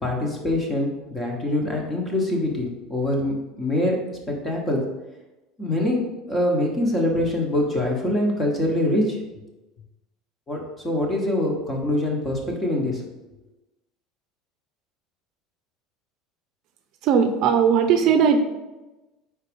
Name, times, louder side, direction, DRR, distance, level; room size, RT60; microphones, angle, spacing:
voice 1, 0.0-3.9 4.4-4.8 5.6-6.0 6.3-9.2 10.5-13.0, left 1 dB, 15° left, 0 dB, 1.3 m, -24 dB
voice 2, 17.0-18.4, right 7 dB, 55° right, 6 dB, 0.6 m, -18 dB
4.8 x 4.0 x 5.3 m, 1.1 s
cardioid pair, 140°, 0 cm